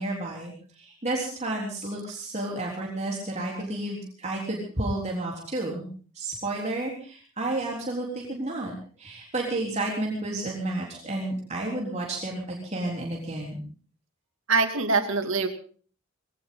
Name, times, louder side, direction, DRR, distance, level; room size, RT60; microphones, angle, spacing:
voice 1, 0.0-5.9 6.1-8.7 9.0-13.6, right 2 dB, 35° right, -2 dB, 3.7 m, -31 dB
voice 2, 14.5-15.5, right 4 dB, 70° right, 7 dB, 2.5 m, -23 dB
21.0 x 17.5 x 3.9 m, 0.42 s
head